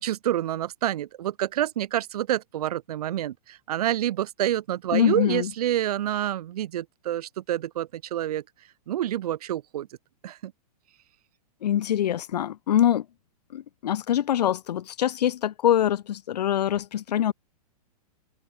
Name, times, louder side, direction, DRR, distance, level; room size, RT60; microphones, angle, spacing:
voice 1, 0.0-8.4 8.9-9.9 10.2-10.5, right 12 dB, 70° right, 0.6 m, -28 dB
voice 2, 4.9-5.5 11.6-13.0 13.5-17.3, left 11 dB, 90° left, 0.6 m, -24 dB
hypercardioid pair, 155°, 20 cm